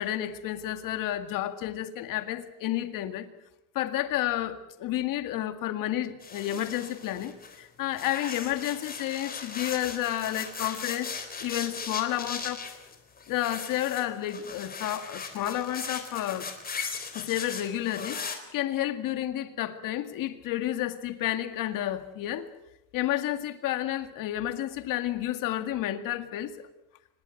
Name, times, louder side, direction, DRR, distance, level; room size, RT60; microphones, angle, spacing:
voice 1, 0.0-3.3 3.7-12.7 13.3-16.5 17.1-22.5 22.9-26.7, left 13 dB, 65° left, 9 dB, 2.1 m, -31 dB
sound 1, 6.2-7.6 7.9-18.4, left 5 dB, 25° left, 3.9 m, -38 dB
25.0 x 21.0 x 7.9 m, 0.86 s
cardioid pair, 140°, 35 cm